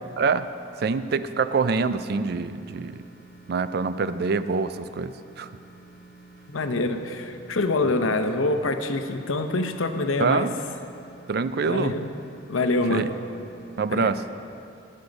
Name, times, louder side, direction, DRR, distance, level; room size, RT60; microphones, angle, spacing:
voice 1, 0.2-0.5 0.8-3.0 3.5-5.5 10.2-10.5 11.3-12.0 12.9-13.1 13.8-14.2, right 4 dB, 50° right, 13 dB, 0.4 m, -25 dB
sound 1, 2.2-14.2, right 2 dB, 55° left, 2.1 m, -50 dB
voice 2, 6.5-10.5 11.6-12.1 12.5-13.1 13.9-14.1, left 2 dB, 90° left, 7 dB, 0.8 m, -25 dB
18.5 x 6.5 x 5.3 m, 2.6 s
head